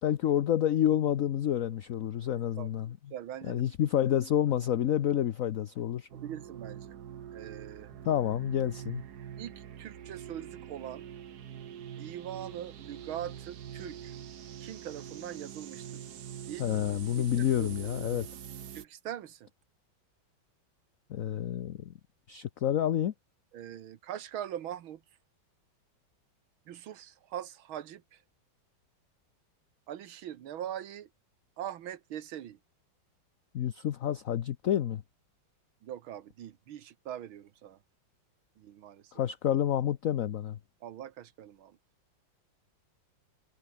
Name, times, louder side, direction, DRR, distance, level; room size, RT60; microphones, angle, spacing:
voice 1, 0.0-3.0 3.5-6.1 8.0-9.0 16.6-18.3 21.1-21.9 22.3-23.1 33.5-35.0 39.1-40.6, left 10 dB, 55° left, 1.0 m, -29 dB
voice 2, 2.6-3.7 6.1-7.0 7.3-7.9 9.4-11.1 12.0-14.1 14.6-16.1 16.5-16.7 17.2-17.7 18.7-19.5 23.5-25.0 26.7-28.2 29.9-31.1 31.6-32.6 35.8-37.8 38.6-39.1 40.8-41.8, right 11 dB, 90° right, 2.0 m, -42 dB
sound 1, 6.1-18.8, right 9 dB, 55° right, 1.5 m, -44 dB
omnidirectional pair, 2.2 m